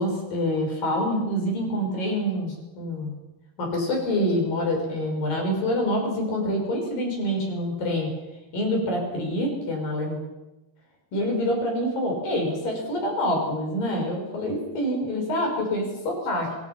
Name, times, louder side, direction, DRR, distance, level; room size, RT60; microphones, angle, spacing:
voice 1, 0.0-3.1 3.6-8.1 8.5-10.2 11.1-16.5, equal, 80° left, 1 dB, 7.9 m, -26 dB
26.0 x 25.0 x 6.0 m, 1.0 s
omnidirectional pair, 3.9 m